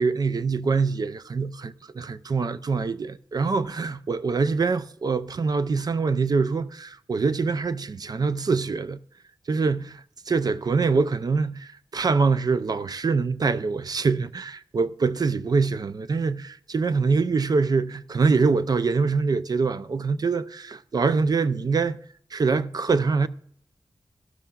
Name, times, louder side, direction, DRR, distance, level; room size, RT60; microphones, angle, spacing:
voice 1, 0.0-9.0 9.5-10.0 10.3-22.0 22.3-23.3, right 4 dB, 55° right, 0.4 m, -24 dB
13.5 x 12.5 x 2.4 m
wide cardioid pair, 75°, 8 cm